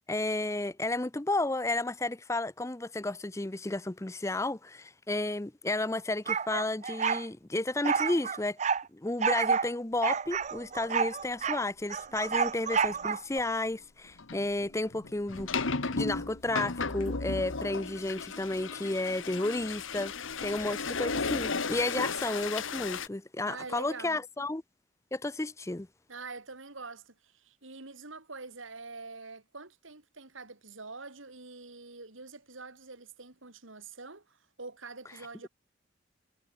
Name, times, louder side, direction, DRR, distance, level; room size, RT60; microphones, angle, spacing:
voice 1, 0.1-8.6 8.9-20.1 20.4-24.6 25.1-25.9, left 2 dB, 15° left, 0.5 m, -32 dB
sound 1, 6.3-7.2 7.8-8.8 9.2-9.7 10.0-11.6 11.9-13.4, right 6 dB, 35° right, 0.5 m, -29 dB
sound 2, 12.2-12.4 12.8-13.1 14.2-23.1, left 4 dB, 80° left, 1.4 m, -34 dB
voice 2, 23.4-24.2 26.1-35.5, right 3 dB, 80° right, 3.5 m, -45 dB
head